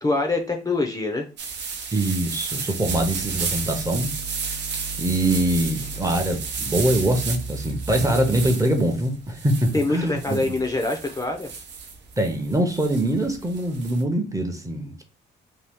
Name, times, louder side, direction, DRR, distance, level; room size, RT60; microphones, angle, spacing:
voice 1, 0.0-1.3 9.7-11.5, left 2 dB, 15° left, 0.5 m, -24 dB
sound 1, 1.4-14.0, right 5 dB, 60° right, 0.7 m, -33 dB
voice 2, 1.9-4.1 5.0-10.6 12.2-15.0, right 1 dB, 15° right, 0.7 m, -23 dB
sound 2, 2.8-8.8, right 3 dB, 35° right, 1.1 m, -36 dB
2.8 x 2.3 x 3.4 m
cardioid pair, 90°, 20 cm